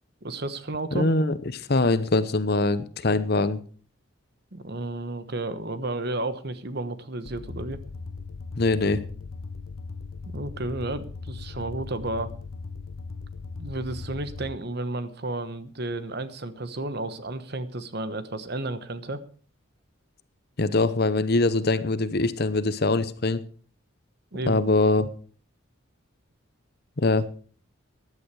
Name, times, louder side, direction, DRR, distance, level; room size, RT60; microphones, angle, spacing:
voice 1, 0.2-1.1 4.5-7.8 10.3-12.3 13.6-19.2 24.3-24.6, right 2 dB, 50° right, 12 dB, 1.1 m, -32 dB
voice 2, 0.9-3.6 8.6-9.0 20.6-23.4 24.5-25.1 27.0-27.3, left 2 dB, 50° left, 14 dB, 0.8 m, -23 dB
sound 1, 7.3-14.6, left 4 dB, 80° left, 0.9 m, -38 dB
15.5 x 10.5 x 4.8 m, 0.42 s
head